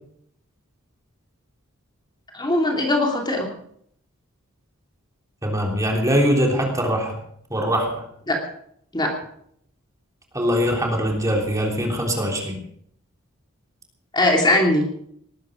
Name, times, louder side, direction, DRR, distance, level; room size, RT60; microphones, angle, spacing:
voice 1, 2.3-3.5 8.3-8.4 8.9-9.1 14.1-14.8, left 1 dB, 20° left, 0 dB, 2.8 m, -20 dB
voice 2, 5.4-7.1 7.5-8.0 10.3-12.6, equal, 15° right, 0 dB, 3.4 m, -22 dB
19.5 x 13.0 x 5.1 m, 0.68 s
head